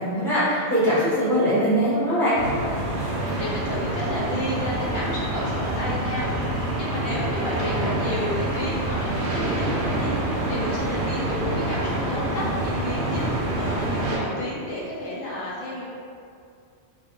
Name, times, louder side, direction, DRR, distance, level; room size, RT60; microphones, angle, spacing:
voice 1, 0.0-2.4, equal, ahead, -13 dB, 0.7 m, -21 dB
sound 1, 2.3-14.2, right 1 dB, 75° right, 0.9 m, -26 dB
voice 2, 3.4-15.8, left 1 dB, 80° left, -6 dB, 1.0 m, -32 dB
2.3 x 2.2 x 2.9 m, 2.4 s
omnidirectional pair, 1.2 m